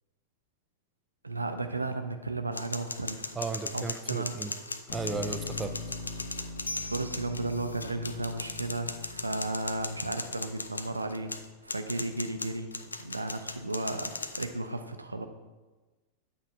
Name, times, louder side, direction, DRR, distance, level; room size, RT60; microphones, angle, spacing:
voice 1, 1.2-3.3 3.7-4.4 6.8-11.3 11.6-12.7 13.0-15.3, right 2 dB, 80° right, 7 dB, 0.5 m, -34 dB
sound 1, 2.5-14.4, left 3 dB, 80° left, 0.4 m, -38 dB
voice 2, 3.3-4.5 4.9-5.8, right 4 dB, 15° right, 8 dB, 0.5 m, -35 dB
sound 2, 4.9-10.9, left 4 dB, 55° left, 1.6 m, -42 dB
8.9 x 3.6 x 5.3 m, 1.2 s
figure-of-eight pair, 90°, 0 cm